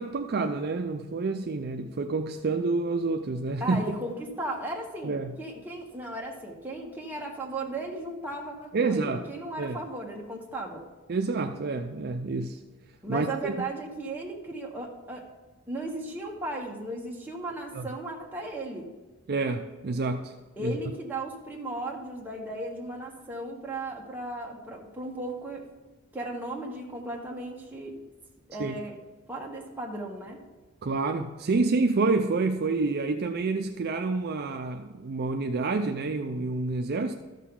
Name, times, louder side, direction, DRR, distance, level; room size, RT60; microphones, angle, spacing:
voice 1, 0.0-3.8 5.0-5.3 8.7-9.3 9.6-9.8 11.1-12.6 13.1-13.5 17.7-17.9 19.3-20.3 20.6-20.8 28.6-28.8 30.8-37.1, right 3 dB, 45° right, 5 dB, 0.5 m, -28 dB
voice 2, 3.6-10.8 13.0-15.2 15.7-18.9 20.6-25.6 26.1-27.9 28.5-29.0 29.3-30.4, right 1 dB, 10° right, -2 dB, 1.4 m, -36 dB
13.5 x 6.5 x 3.8 m, 1.2 s
head